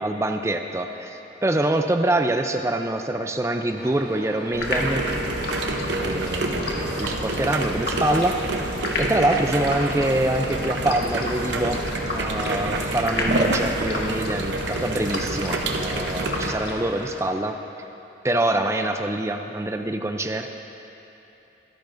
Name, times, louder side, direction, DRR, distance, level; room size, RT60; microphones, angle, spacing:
voice 1, 0.0-5.1 5.7-8.5 9.0-11.8 12.1-17.6 18.2-20.5, right 1 dB, 15° right, 6 dB, 0.4 m, -25 dB
sound 1, 3.8-10.9 11.3-17.2, right 1 dB, 55° right, 1.3 m, -41 dB
sound 2, 4.5-17.2, left 1 dB, 65° left, 1.6 m, -32 dB
sound 3, 4.7-16.5, right 2 dB, 80° right, 0.8 m, -28 dB
24.0 x 10.5 x 2.6 m, 3.0 s
head